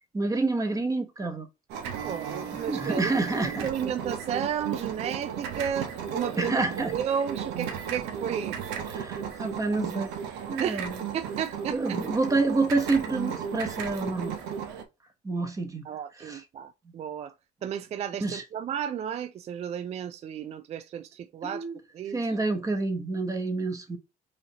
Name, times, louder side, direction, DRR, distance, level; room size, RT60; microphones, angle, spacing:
voice 1, 0.1-1.5 2.5-3.7 6.4-6.9 8.9-10.1 10.5-11.0 11.7-14.4 15.2-15.8 16.2-16.4 18.2-18.4 21.4-21.8 22.1-24.0, right 3 dB, 20° right, 1.1 m, -28 dB
sound 1, 1.7-14.8, right 7 dB, 90° right, 0.9 m, -35 dB
voice 2, 2.0-6.6 6.9-8.9 10.6-10.9 11.1-12.0 15.8-17.3 17.6-21.6 21.9-22.4, right 8 dB, 40° right, 0.3 m, -33 dB
4.9 x 2.8 x 2.8 m
cardioid pair, 110°, 17 cm